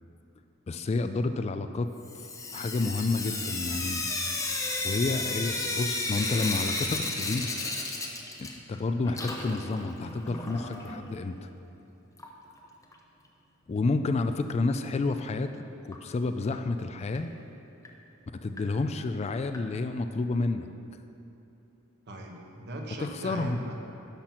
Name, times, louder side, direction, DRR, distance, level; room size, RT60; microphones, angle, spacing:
voice 1, 0.7-1.9 2.5-4.0 4.8-7.5 8.4-11.4 13.7-17.3 18.4-20.7 23.0-23.7, left 3 dB, 30° left, 9 dB, 0.3 m, -30 dB
Sink (filling or washing) / Drip, 2.0-8.8 9.0-11.0 12.2-12.3 12.6-12.7 12.9-13.0 15.9-16.0 16.5-16.6 17.1-17.2 17.8-17.9 18.6-18.7 19.5-19.6, left 3 dB, 15° left, 0.8 m, -33 dB
voice 2, 22.1-23.7, right 1 dB, 55° right, 1 dB, 1.2 m, -39 dB
10.5 x 5.9 x 5.9 m, 2.8 s
head